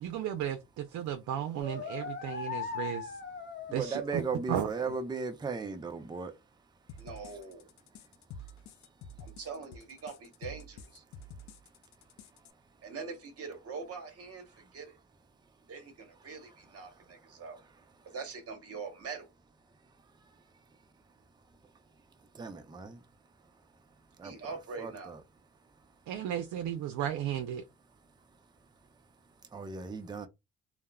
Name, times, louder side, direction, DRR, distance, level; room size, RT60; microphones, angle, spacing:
voice 1, 0.0-3.2 3.7-4.2 4.5-4.7 26.1-27.6, right 10 dB, 70° right, 0.5 m, -34 dB
sound 1, 1.6-4.4, left 6 dB, 35° left, 0.9 m, -39 dB
voice 2, 3.7-6.3 22.3-23.0 24.2-24.3 24.8-25.2 29.5-30.3, right 4 dB, 15° right, 0.4 m, -36 dB
sound 2, 6.9-12.5, left 2 dB, 70° left, 0.5 m, -49 dB
voice 3, 7.0-7.7 9.2-11.0 12.8-15.0 15.7-19.3 24.2-25.2 28.4-28.5, right 5 dB, 50° right, 1.0 m, -44 dB
3.3 x 2.0 x 2.2 m
cardioid pair, 90°, 30 cm